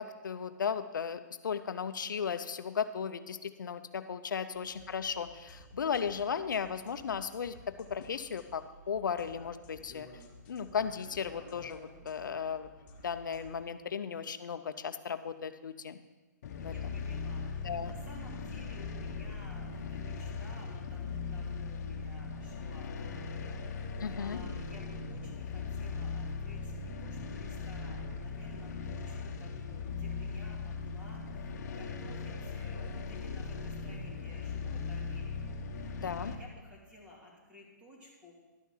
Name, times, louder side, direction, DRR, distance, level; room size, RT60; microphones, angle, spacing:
voice 1, 0.0-10.1 10.5-12.7 13.0-16.0 16.6-16.9 17.6-17.9 24.0-24.4 36.0-36.3, left 7 dB, 85° left, 11 dB, 0.6 m, -36 dB
voice 2, 4.4-4.8 13.9-14.0 16.6-38.3, left 1 dB, 10° right, -4 dB, 2.5 m, -55 dB
sound 1, 4.5-13.5, left 1 dB, 35° left, 1.7 m, -54 dB
sound 2, 16.4-36.3, left 5 dB, 55° left, 1.0 m, -39 dB
11.5 x 5.8 x 5.7 m, 1.2 s
hypercardioid pair, 155°, 10 cm